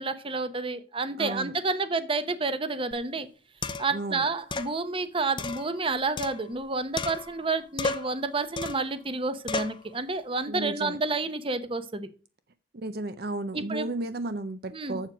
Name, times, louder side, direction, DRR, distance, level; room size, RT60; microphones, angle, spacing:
voice 1, 0.0-3.3 3.8-12.1 13.5-13.9 14.7-15.1, right 3 dB, 30° right, 0.8 m, -30 dB
voice 2, 1.2-1.5 3.9-4.3 10.5-11.0 12.7-15.1, right 2 dB, 55° right, 0.6 m, -33 dB
sound 1, 2.9-3.0 3.6-4.0 4.5-4.7 5.4-6.6 7.0-7.5 7.8-8.2 8.6-8.9 9.5-9.8, left 3 dB, 25° left, 0.6 m, -33 dB
7.5 x 7.2 x 4.9 m
head